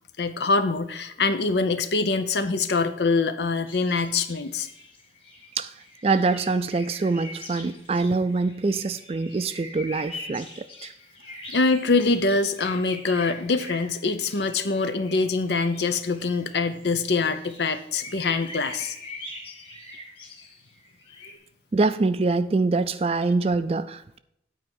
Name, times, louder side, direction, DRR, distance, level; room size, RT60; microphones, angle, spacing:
voice 1, 0.2-4.7 11.5-19.0, left 3 dB, 80° left, 9 dB, 0.7 m, -24 dB
sound 1, 3.7-21.3, left 2 dB, 30° left, 1.8 m, -43 dB
voice 2, 6.0-10.9 21.7-24.2, right 3 dB, 35° right, 12 dB, 0.3 m, -24 dB
9.3 x 4.6 x 7.1 m, 0.75 s
head